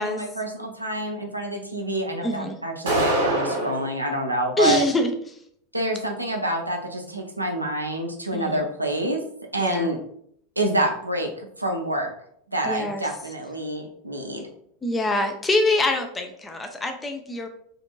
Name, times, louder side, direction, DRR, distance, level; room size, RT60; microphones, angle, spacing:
voice 1, 0.0-4.8 5.7-9.2 9.5-10.0 10.6-12.1 12.5-14.4, right 1 dB, 90° right, 2 dB, 0.4 m, -27 dB
voice 2, 2.2-2.6 4.6-5.1 8.3-8.7 9.6-9.9 12.6-13.1 14.8-17.5, left 2 dB, 15° left, 5 dB, 0.4 m, -24 dB
sound 1, 2.9-3.9, right 1 dB, 65° right, 0.9 m, -23 dB
2.5 x 2.5 x 2.9 m, 0.68 s
figure-of-eight pair, 85°, 0 cm